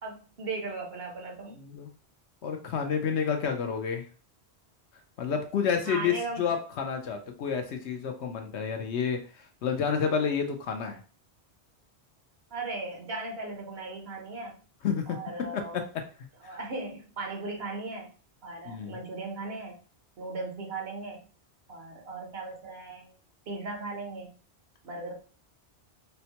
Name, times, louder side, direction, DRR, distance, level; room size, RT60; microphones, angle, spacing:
voice 1, 0.0-1.6 5.8-6.4 12.5-14.6 15.1-15.8 16.4-18.1 18.4-19.8 20.2-21.2 21.7-23.1 23.5-24.3 24.8-25.2, right 3 dB, 65° right, 1 dB, 1.1 m, -37 dB
voice 2, 1.5-1.9 2.4-4.1 5.2-11.0 14.8-15.2 15.5-15.8 16.4-16.6 18.6-19.0, left 6 dB, 85° left, 4 dB, 1.0 m, -30 dB
4.4 x 2.1 x 2.8 m, 0.37 s
omnidirectional pair, 1.1 m